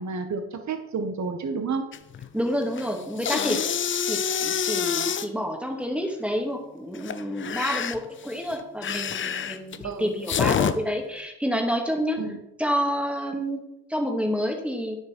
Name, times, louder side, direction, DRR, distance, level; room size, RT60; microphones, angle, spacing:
voice 1, 0.0-1.9 9.8-10.1 12.2-12.4, right 4 dB, 35° right, 6 dB, 1.8 m, -30 dB
sound 1, 1.9-2.3 2.6-5.3 6.9-10.7, left 8 dB, 25° left, 0.7 m, -27 dB
voice 2, 2.3-3.6 4.1-12.2 12.6-13.6 13.9-15.0, equal, 5° right, 2 dB, 2.3 m, -28 dB
9.7 x 7.0 x 4.6 m, 0.87 s
hypercardioid pair, 75°, 46 cm